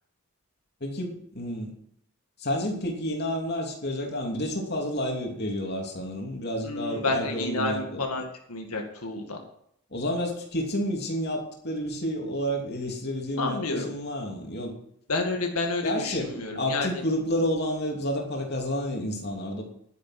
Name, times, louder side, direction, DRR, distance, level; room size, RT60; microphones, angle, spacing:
voice 1, 0.8-1.7 2.4-8.0 9.9-14.7 15.8-19.6, equal, 45° left, 1 dB, 2.9 m, -30 dB
voice 2, 6.6-9.4 13.4-13.9 15.1-17.0, left 2 dB, 90° left, 2 dB, 2.1 m, -30 dB
11.5 x 9.5 x 6.0 m, 0.69 s
head